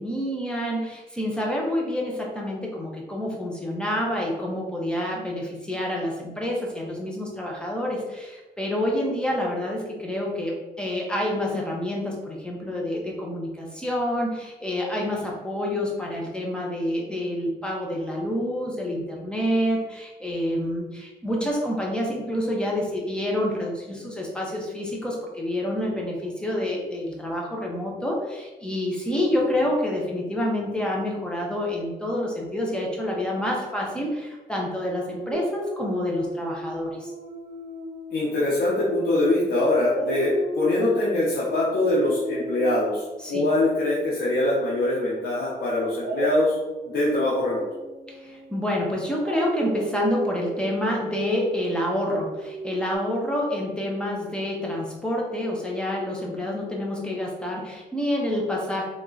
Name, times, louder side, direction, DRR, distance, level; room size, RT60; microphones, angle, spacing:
voice 1, 0.0-37.1 43.2-43.4 48.1-58.8, left 1 dB, 5° left, -2 dB, 1.1 m, -28 dB
Dog, 35.3-39.5 39.9-44.9 46.0-52.9, right 1 dB, 85° right, 0.6 m, -35 dB
voice 2, 38.1-46.6 46.9-47.6, left 2 dB, 85° left, -7 dB, 1.0 m, -23 dB
3.7 x 3.0 x 3.9 m, 1.1 s
cardioid pair, 110°, 16 cm